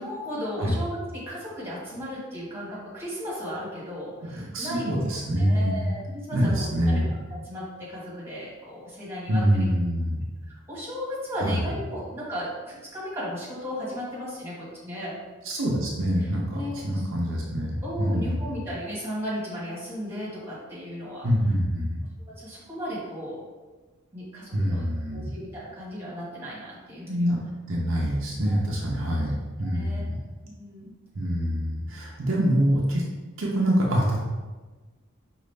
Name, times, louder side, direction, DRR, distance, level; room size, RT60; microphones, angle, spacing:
voice 1, 0.0-5.0 5.4-7.0 7.4-9.6 10.5-15.1 16.5-16.8 17.8-21.3 22.4-23.4 24.1-24.8 25.1-27.3 28.5-28.6 29.6-30.0 30.4-30.9, equal, 10° right, -7 dB, 1.4 m, -35 dB
voice 2, 4.3-5.9 6.3-7.1 9.3-10.2 11.4-11.7 15.4-18.4 21.2-22.0 24.5-25.3 27.1-27.4 27.7-30.2 31.1-33.0 33.4-34.2, equal, 70° right, -3 dB, 0.6 m, -25 dB
5.0 x 2.4 x 3.3 m, 1.3 s
head